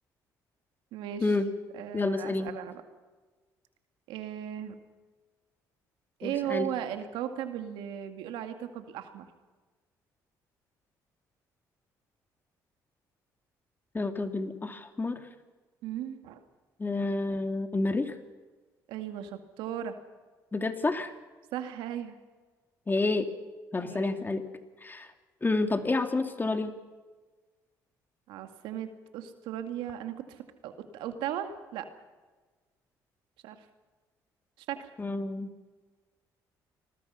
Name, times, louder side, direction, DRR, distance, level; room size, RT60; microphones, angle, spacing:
voice 1, 0.9-1.4 1.7-2.8 4.1-4.8 6.2-9.3 15.8-16.4 18.9-19.9 21.5-22.2 23.9-24.1 28.3-30.4 30.6-31.9 33.4-33.6 34.7-34.9, right 10 dB, 80° right, 7 dB, 2.1 m, -36 dB
voice 2, 1.9-2.5 6.2-6.7 13.9-15.2 16.8-18.1 20.5-21.1 22.9-23.3 23.7-24.4 24.8-25.1 25.4-26.7 35.0-35.5, left 3 dB, 25° left, 7 dB, 2.5 m, -29 dB
27.0 x 20.5 x 5.7 m, 1.3 s
supercardioid pair, 70°, 8 cm